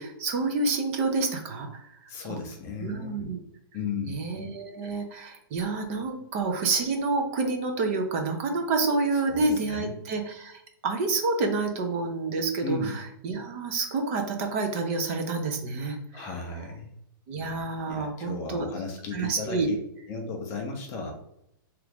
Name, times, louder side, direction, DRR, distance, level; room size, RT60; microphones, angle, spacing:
voice 1, 0.0-1.8 2.3-2.4 2.8-3.4 4.1-16.3 17.3-18.7 19.1-19.7, right 3 dB, 35° right, 4 dB, 0.5 m, -28 dB
voice 2, 2.1-3.2 3.7-4.3 9.3-9.9 12.6-13.0 16.1-16.9 17.9-19.8 20.1-21.1, left 4 dB, 20° left, 2 dB, 0.5 m, -35 dB
2.9 x 2.4 x 3.4 m, 0.77 s
hypercardioid pair, 165°, 12 cm